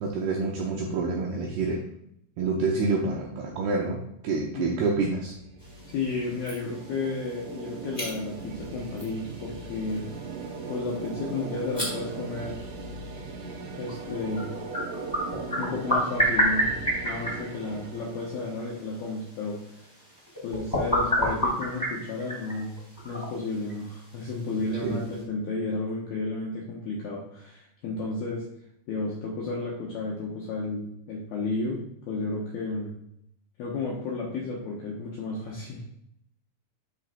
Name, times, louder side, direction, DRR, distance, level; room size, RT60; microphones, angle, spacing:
voice 1, 0.0-1.8 2.4-5.3 24.8-25.0, right 3 dB, 90° right, -1 dB, 2.2 m, -27 dB
sound 1, 4.7-19.6, right 4 dB, 75° right, 2.9 m, -39 dB
sound 2, 5.6-25.2, equal, 5° left, 1.5 m, -33 dB
voice 2, 5.9-10.1 10.7-12.6 13.8-14.5 15.6-16.7 17.0-19.6 20.4-22.8 23.0-28.4 28.9-32.9 33.6-35.8, left 3 dB, 75° left, -3 dB, 2.3 m, -32 dB
12.0 x 5.0 x 2.5 m, 0.75 s
omnidirectional pair, 5.8 m